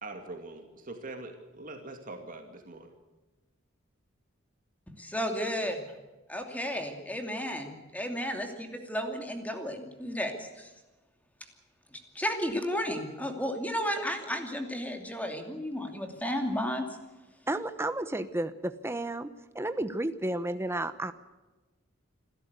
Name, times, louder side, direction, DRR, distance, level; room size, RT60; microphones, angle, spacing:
voice 1, 0.0-2.9, right 2 dB, 40° right, 4 dB, 2.5 m, -43 dB
voice 2, 5.0-5.8 6.3-10.7 12.1-16.9, equal, 10° left, 5 dB, 2.7 m, -33 dB
voice 3, 17.5-19.3 19.5-21.1, right 1 dB, 10° right, 10 dB, 0.9 m, -32 dB
27.5 x 13.0 x 8.2 m, 1.2 s
head